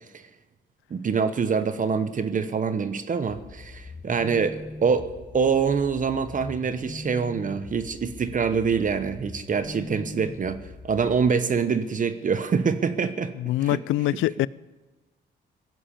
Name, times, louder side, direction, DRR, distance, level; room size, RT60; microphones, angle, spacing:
voice 1, 0.9-13.3 13.6-13.8, right 6 dB, 40° right, 1.0 m, -25 dB
sound 1, 3.3-11.3, left 3 dB, 20° left, 1.4 m, -42 dB
voice 2, 13.4-14.5, left 14 dB, 85° left, 0.4 m, -24 dB
16.5 x 7.9 x 8.7 m
cardioid pair, 90°, 20 cm